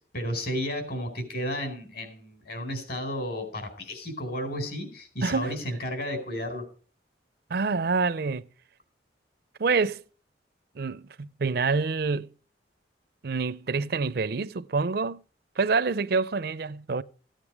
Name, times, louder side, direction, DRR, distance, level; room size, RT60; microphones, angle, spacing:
voice 1, 0.1-6.6, equal, 55° left, 4.5 m, -32 dB
voice 2, 5.2-5.5 7.5-8.5 9.6-10.0 10.8-12.3 13.2-15.2 15.6-17.0, right 4 dB, 55° right, 0.5 m, -27 dB
15.0 x 8.9 x 4.7 m
head